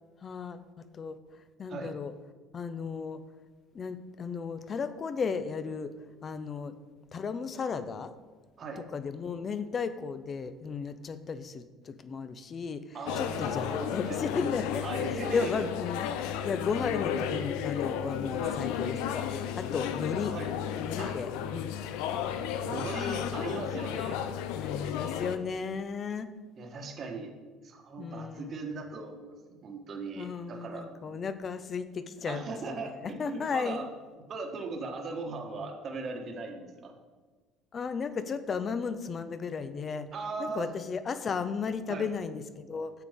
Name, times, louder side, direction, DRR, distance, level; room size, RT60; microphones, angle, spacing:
voice 1, 0.2-1.2 1.6-2.1 2.5-3.2 3.7-5.9 6.2-6.7 7.1-8.1 8.8-14.9 15.1-20.3 20.8-21.7 24.6-26.3 28.0-28.8 30.2-32.4 32.7-33.9 37.7-40.1 40.4-42.9, left 5 dB, 35° left, 12 dB, 0.5 m, -35 dB
voice 2, 12.9-14.2 14.8-15.7 18.4-18.6 20.3-20.5 21.0-21.2 22.6-24.2 26.6-27.3 27.6-31.2 32.2-33.8 34.2-36.9 40.1-40.7 41.9-42.1, right 3 dB, 40° right, 3 dB, 1.3 m, -38 dB
sound 1, 13.1-25.4, left 9 dB, 85° left, 0.5 m, -33 dB
9.1 x 6.8 x 3.6 m, 1.4 s
cardioid pair, 120°, 0 cm